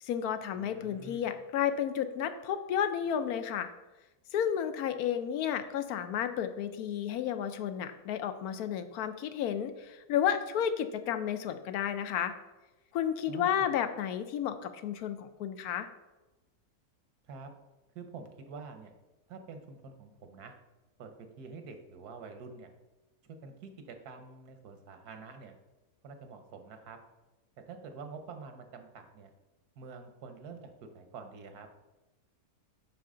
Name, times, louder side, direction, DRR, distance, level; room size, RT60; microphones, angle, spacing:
voice 1, 0.0-3.7 4.3-12.3 12.9-15.9, left 9 dB, 80° left, 10 dB, 1.1 m, -32 dB
voice 2, 0.5-1.3 13.3-13.7 17.3-17.5 17.9-18.9 19.3-20.5 21.0-22.7 23.2-25.5 26.0-27.0 27.7-29.3 29.8-31.7, right 5 dB, 90° right, 6 dB, 1.4 m, -47 dB
7.5 x 5.7 x 3.7 m, 1.1 s
omnidirectional pair, 1.6 m